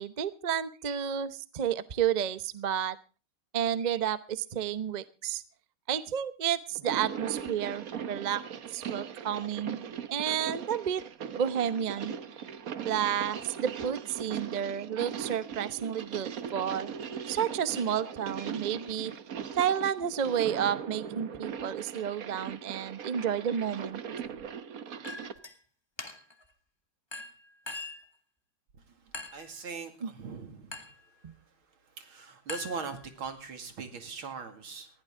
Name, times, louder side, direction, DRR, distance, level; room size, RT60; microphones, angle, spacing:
voice 1, 0.0-3.0 3.5-5.4 5.9-9.8 10.1-11.0 11.3-12.1 12.8-16.9 17.3-19.1 19.6-24.0 30.0-30.1 31.2-31.3, right 9 dB, 75° right, 13 dB, 0.4 m, -31 dB
sound 1, 6.7-25.4, right 7 dB, 55° right, 1.2 m, -39 dB
Chink clink, 25.0-25.6 26.0-26.4 27.1-28.1 29.1-29.5 30.7-31.0 32.5-33.3, left 3 dB, 15° left, 1.5 m, -42 dB
voice 2, 29.3-30.8 32.0-34.9, right 5 dB, 90° right, 6 dB, 3.2 m, -40 dB
20.0 x 15.5 x 3.7 m, 0.35 s
omnidirectional pair, 2.2 m